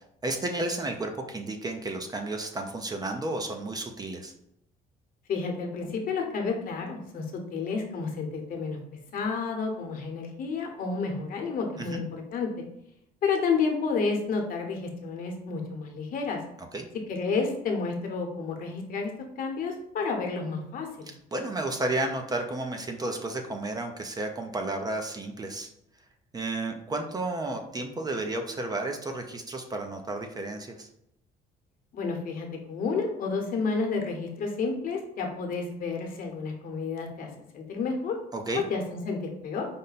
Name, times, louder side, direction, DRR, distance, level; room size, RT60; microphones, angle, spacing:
voice 1, 0.2-4.3 11.8-12.0 16.7-16.9 21.1-25.7 26.3-30.9 38.3-38.6, right 2 dB, 25° right, 4 dB, 0.5 m, -32 dB
voice 2, 5.3-8.8 9.1-12.6 13.2-16.4 17.1-19.1 19.4-21.1 31.9-38.1 38.5-39.7, left 4 dB, 55° left, 3 dB, 1.0 m, -30 dB
5.2 x 2.2 x 4.0 m, 0.77 s
cardioid pair, 110°, 17 cm